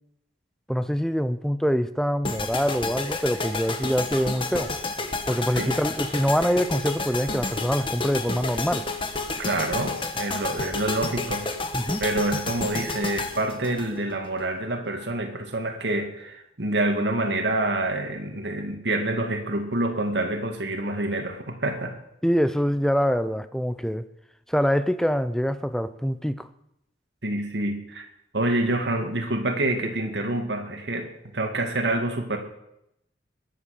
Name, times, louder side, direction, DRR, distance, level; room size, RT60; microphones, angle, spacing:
voice 1, 0.7-4.7 5.3-8.9 11.7-12.0 22.2-24.0 24.5-26.5, equal, 5° left, 12 dB, 0.6 m, -24 dB
sound 1, 2.2-14.4, left 3 dB, 30° left, 1.4 m, -30 dB
voice 2, 9.4-11.5 12.0-21.9 27.2-28.1 28.3-32.4, right 2 dB, 75° right, 4 dB, 2.4 m, -27 dB
21.0 x 8.4 x 6.8 m, 0.82 s
head